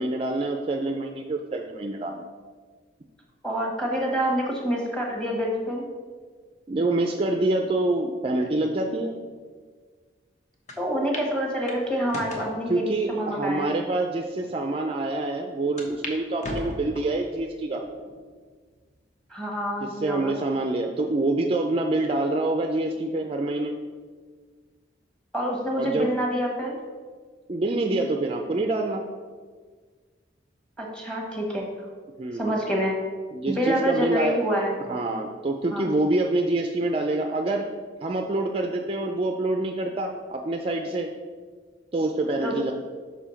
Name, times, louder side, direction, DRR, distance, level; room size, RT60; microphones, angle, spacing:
voice 1, 0.0-2.2 6.7-9.2 12.7-17.8 19.8-23.7 25.8-26.1 27.5-29.1 32.2-32.6 33.3-34.4 34.8-37.7 38.0-41.1 41.9-42.7, right 2 dB, 30° right, 4 dB, 0.4 m, -26 dB
voice 2, 3.4-5.8 10.8-13.7 19.3-20.3 25.3-26.8 30.8-31.7 32.3-32.9 33.5-34.7 35.7-35.9 42.4-42.7, equal, 5° left, -1 dB, 1.4 m, -27 dB
sound 1, 10.7-10.8 11.1-11.3 11.7-12.5 13.2-13.3 14.0-14.1 14.4-14.5 15.8-16.2 16.4-17.2 17.7-18.2 18.7-18.8 20.0-20.4, left 1 dB, 40° left, 1.0 m, -36 dB
5.6 x 4.8 x 5.6 m, 1.5 s
head